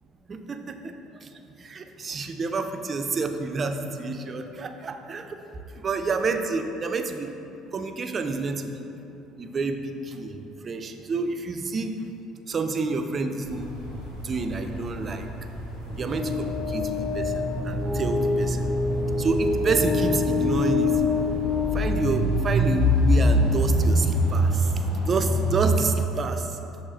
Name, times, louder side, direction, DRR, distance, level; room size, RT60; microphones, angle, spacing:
voice 1, 0.3-0.7 1.7-5.3 5.8-7.3 7.7-8.9 9.4-10.3 10.6-11.9 12.5-13.7 14.2-15.3 16.0-17.2 17.6-18.7 19.2-20.9 21.7-24.1 24.3-24.5 25.1-26.4, right 4 dB, 40° right, 6 dB, 0.3 m, -28 dB
sound 1, 13.4-25.9, equal, 85° left, 0.8 m, -26 dB
sound 2, 15.9-22.8, left 4 dB, 20° left, 0.9 m, -26 dB
6.2 x 2.8 x 2.7 m, 2.9 s
hypercardioid pair, 60°, 0 cm